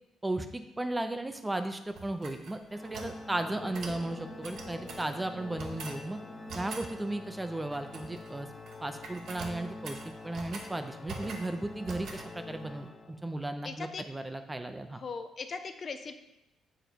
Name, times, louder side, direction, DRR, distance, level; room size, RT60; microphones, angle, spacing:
voice 1, 0.2-6.2 6.5-8.5 8.8-15.0, right 2 dB, 15° right, 8 dB, 0.5 m, -35 dB
sound 1, 1.9-3.2 3.7-4.0 4.4-5.1 5.6-6.0 6.5-6.9 7.7-8.3 8.6-8.8 9.0-10.7 11.1-11.5 11.9-12.3, right 4 dB, 70° right, 0.9 m, -43 dB
Organ, 2.7-13.5, left 3 dB, 30° left, 0.9 m, -46 dB
sound 2, 3.3-9.7, left 1 dB, 90° left, 1.8 m, -52 dB
voice 2, 13.6-14.0 14.9-16.2, left 4 dB, 45° left, 8 dB, 0.5 m, -39 dB
7.1 x 3.9 x 4.5 m, 0.89 s
cardioid pair, 90°, 0 cm